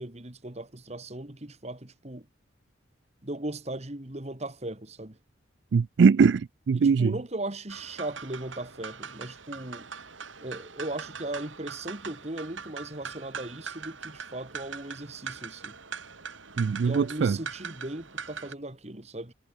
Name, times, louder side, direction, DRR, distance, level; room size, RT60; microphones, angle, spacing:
voice 1, 0.0-2.3 3.2-5.2 6.7-9.9 10.4-15.8 16.8-19.3, right 1 dB, 35° right, 1.9 m, -37 dB
voice 2, 5.7-7.1 16.6-17.4, right 5 dB, 60° right, 0.3 m, -21 dB
sound 1, 7.7-18.5, right 6 dB, 75° right, 3.4 m, -42 dB
head